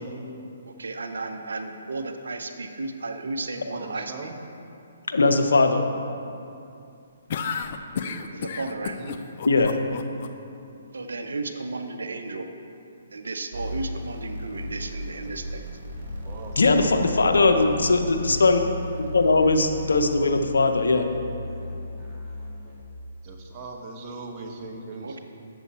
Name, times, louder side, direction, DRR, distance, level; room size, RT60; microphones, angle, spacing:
voice 1, 0.7-4.3 8.3-9.0 10.9-12.5 13.1-15.6 25.0-25.2, right 3 dB, 80° right, 6 dB, 0.7 m, -34 dB
voice 2, 3.5-4.4 7.9-8.3 8.7-9.2 16.0-17.1 23.2-25.2, right 3 dB, 30° right, 1 dB, 1.0 m, -40 dB
voice 3, 5.1-5.9 9.4-9.7 16.6-18.6 19.1-21.1, left 3 dB, 80° left, 5 dB, 0.7 m, -20 dB
sound 1, 7.3-10.3, left 6 dB, 50° left, 0.5 m, -31 dB
angry-sawtooth-wobble-down, 13.5-20.4, equal, 55° right, 1.9 m, -38 dB
Musical instrument, 15.9-22.8, left 2 dB, 5° left, 1.4 m, -36 dB
8.0 x 7.0 x 4.2 m, 2.6 s
hypercardioid pair, 140°, 0 cm